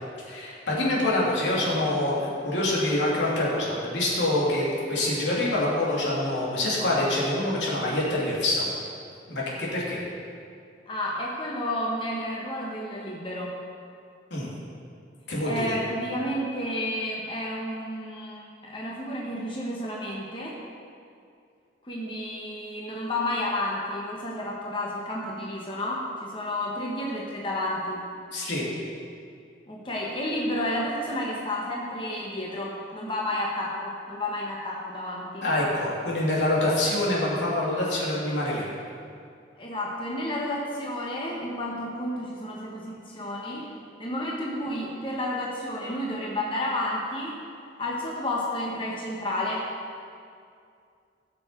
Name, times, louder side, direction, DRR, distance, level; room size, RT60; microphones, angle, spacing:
voice 1, 0.2-8.7 9.3-10.0 14.3-14.5 15.3-15.7 28.3-28.6 35.4-38.6, left 1 dB, 85° left, -5 dB, 3.1 m, -26 dB
voice 2, 10.9-13.6 15.4-20.6 21.8-28.0 29.7-35.4 39.6-43.7 44.0-47.4 47.8-49.7, left 1 dB, 30° left, -3 dB, 1.2 m, -31 dB
17.5 x 6.8 x 4.5 m, 2.4 s
head